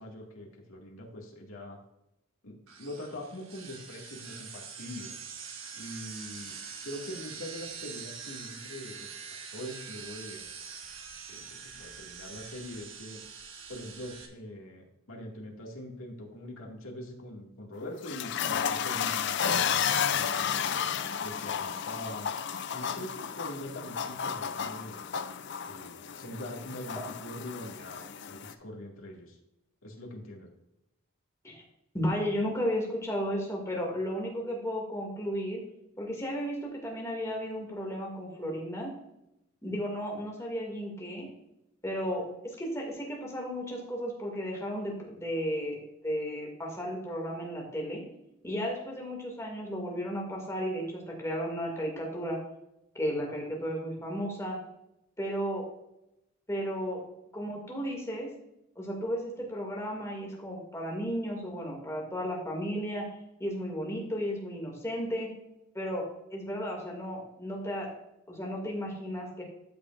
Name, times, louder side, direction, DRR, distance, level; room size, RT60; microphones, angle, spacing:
voice 1, 0.0-1.8 2.4-5.1 5.7-6.5 6.8-9.2 9.5-10.5 11.3-13.2 13.7-20.7 21.2-22.3 22.7-25.0 25.7-29.4 29.8-30.5, left 1 dB, 80° left, -1 dB, 2.1 m, -43 dB
sound 1, 2.7-14.3, right 6 dB, 75° right, 1.3 m, -44 dB
sound 2, 17.7-28.5, left 8 dB, 55° left, 0.4 m, -32 dB
voice 2, 31.9-35.6 36.0-38.9 39.6-41.3 41.8-48.0 48.4-52.4 52.9-54.6 55.2-55.6 56.5-57.0 57.3-58.3 58.8-63.1 63.4-65.3 65.7-67.9 68.3-69.4, equal, 15° left, -1 dB, 2.3 m, -34 dB
13.0 x 6.1 x 2.5 m, 0.85 s
head